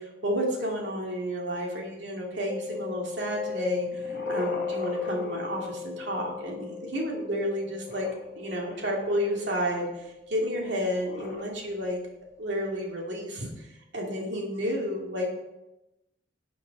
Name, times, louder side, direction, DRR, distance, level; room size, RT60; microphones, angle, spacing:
voice 1, 0.0-8.1 8.4-12.0 12.4-15.4, equal, 65° right, -1 dB, 2.5 m, -31 dB
Mallet percussion, 2.5-12.1, left 5 dB, 15° left, 0.5 m, -38 dB
sound 1, 3.7-6.3 7.8-9.6 10.9-11.4, left 2 dB, 45° left, 1.2 m, -41 dB
11.5 x 8.6 x 4.1 m, 0.95 s
head